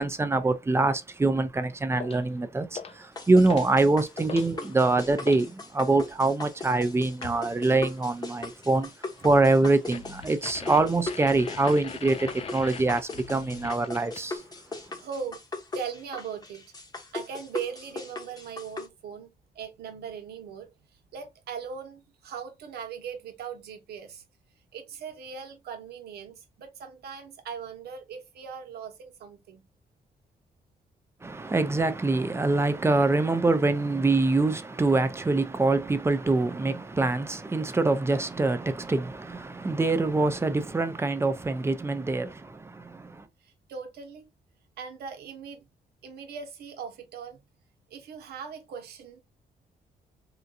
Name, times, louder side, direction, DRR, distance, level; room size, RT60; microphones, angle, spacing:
voice 1, 0.0-8.9 9.2-14.4 31.2-43.2, right 2 dB, 15° right, 0.5 m, -24 dB
sound 1, 2.0-2.3 2.7-3.1 3.5-3.8 4.1-5.5 7.2-7.5 9.9-14.4, left 6 dB, 40° left, 0.4 m, -41 dB
sound 2, 3.2-18.9, left 3 dB, 25° left, 0.8 m, -39 dB
voice 2, 15.0-15.4 15.7-16.6 17.1-19.3 19.5-20.7 21.1-24.2 24.7-29.7 43.4-44.3 44.8-45.7 46.0-47.4 47.9-49.2, right 6 dB, 85° right, 0.9 m, -39 dB
3.7 x 2.3 x 2.6 m
cardioid pair, 120°, 16 cm